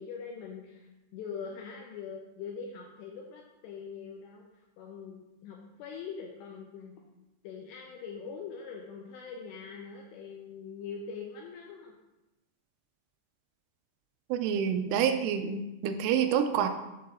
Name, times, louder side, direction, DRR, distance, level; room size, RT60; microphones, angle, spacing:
voice 1, 0.0-7.0 7.4-12.0, left 6 dB, 85° left, 0 dB, 2.4 m, -43 dB
voice 2, 14.3-16.7, right 8 dB, 90° right, 8 dB, 3.1 m, -27 dB
7.6 x 7.6 x 2.7 m, 0.99 s
omnidirectional pair, 5.5 m